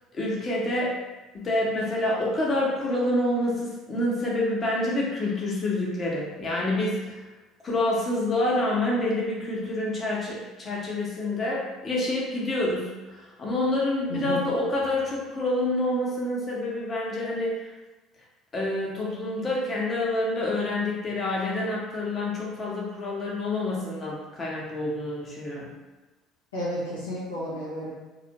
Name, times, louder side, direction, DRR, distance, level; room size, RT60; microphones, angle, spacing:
voice 1, 0.1-0.9 1.3-7.2 7.6-17.7 18.5-25.7, left 1 dB, 35° left, -4 dB, 0.9 m, -27 dB
voice 2, 14.1-14.5 26.5-27.9, left 1 dB, 90° left, -7 dB, 0.6 m, -32 dB
2.4 x 2.1 x 2.8 m, 1.2 s
hypercardioid pair, 65°, 0 cm